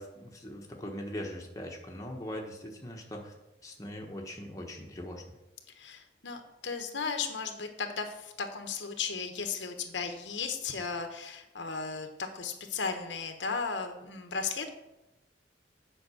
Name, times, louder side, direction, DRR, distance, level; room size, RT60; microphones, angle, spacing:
voice 1, 0.0-3.3 3.6-5.2, equal, 15° left, 0 dB, 1.2 m, -41 dB
voice 2, 5.7-12.1 12.3-14.7, left 5 dB, 70° left, 6 dB, 1.0 m, -35 dB
7.8 x 5.3 x 7.0 m, 0.94 s
head